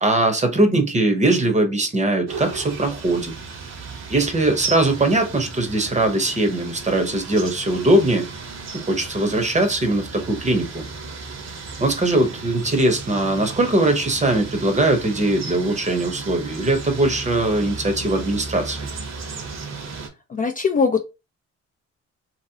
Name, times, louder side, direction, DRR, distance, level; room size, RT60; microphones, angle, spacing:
voice 1, 0.0-3.3 4.1-8.3 8.7-10.8 11.8-18.8, right 2 dB, 25° right, 0.8 m, -20 dB
sound 1, 2.3-20.1, right 4 dB, 60° right, 1.0 m, -35 dB
voice 2, 20.3-21.0, left 5 dB, 30° left, 0.4 m, -20 dB
2.8 x 2.8 x 2.7 m
cardioid pair, 90°, 30 cm